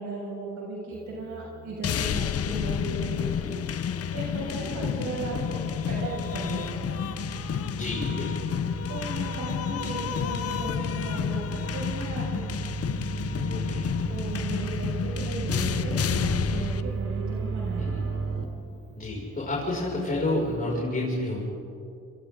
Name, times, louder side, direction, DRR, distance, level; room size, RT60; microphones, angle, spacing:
voice 1, 0.0-6.9 8.9-12.6 14.1-18.0, right 3 dB, 70° right, -5 dB, 6.7 m, -36 dB
sound 1, 0.9-20.6, right 1 dB, 20° right, 6.9 m, -47 dB
sound 2, 1.8-16.8, left 8 dB, 50° left, 0.9 m, -30 dB
sound 3, 4.6-18.4, right 5 dB, 50° right, 3.1 m, -35 dB
voice 2, 7.8-8.5 13.5-14.1 17.8-18.0 19.0-21.4, left 2 dB, 30° left, -6 dB, 6.5 m, -30 dB
29.5 x 26.0 x 3.9 m, 2.6 s
cardioid pair, 90°, 30 cm